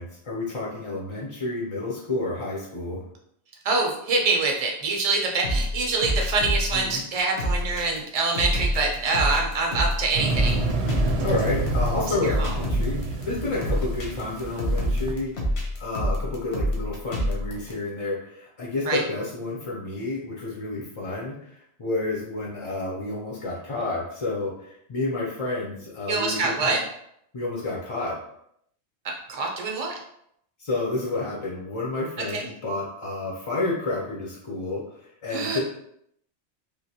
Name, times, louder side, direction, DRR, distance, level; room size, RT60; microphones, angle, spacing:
voice 1, 0.0-3.0 6.7-7.0 11.2-15.3 15.8-26.8 27.3-28.2 30.6-35.6, left 2 dB, 40° left, -3 dB, 0.4 m, -30 dB
voice 2, 3.6-10.6 12.2-12.5 18.9-19.0 26.1-26.8 29.0-30.0 32.2-32.5 35.3-35.6, right 3 dB, 40° right, 0 dB, 0.6 m, -25 dB
sound 1, 5.4-17.7, equal, 85° left, 1.1 m, -27 dB
sound 2, 10.1-15.1, right 3 dB, 75° right, 0.8 m, -29 dB
3.3 x 2.5 x 2.7 m, 0.73 s
omnidirectional pair, 1.2 m